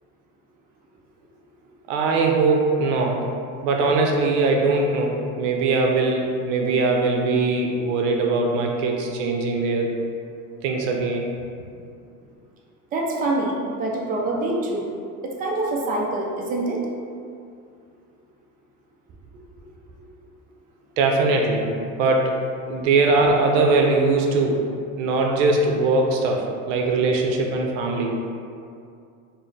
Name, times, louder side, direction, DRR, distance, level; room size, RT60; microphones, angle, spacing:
voice 1, 1.9-3.2 3.6-9.9 10.6-11.3 21.0-21.7 22.0-22.4 22.7-24.6 25.0-28.1, right 3 dB, 80° right, 1 dB, 0.6 m, -21 dB
voice 2, 12.9-14.9 15.2-16.8 20.0-20.1, right 2 dB, 25° right, -2 dB, 0.5 m, -25 dB
4.3 x 2.1 x 3.2 m, 2.4 s
cardioid pair, 130°, 36 cm